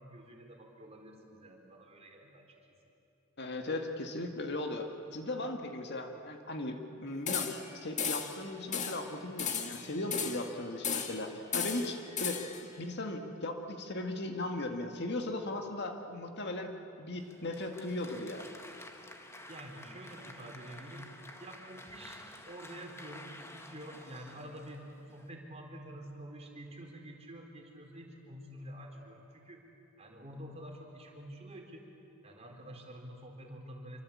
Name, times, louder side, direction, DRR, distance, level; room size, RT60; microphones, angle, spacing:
voice 1, 0.0-2.6 19.5-21.1 21.4-22.2 22.5-29.6 30.0-31.9 32.2-34.0, right 1 dB, 30° right, 1 dB, 4.0 m, -48 dB
voice 2, 3.4-12.4 12.8-18.5, left 2 dB, 55° left, 5 dB, 1.9 m, -37 dB
sound 1, 7.3-7.7 8.0-8.4 8.7-9.0 9.4-10.5 10.8-11.2 11.5-12.6, left 6 dB, 35° left, 1.8 m, -35 dB
Applause, 17.2-25.3, left 1 dB, 15° left, 1.6 m, -51 dB
26.0 x 25.0 x 8.5 m, 2.8 s
head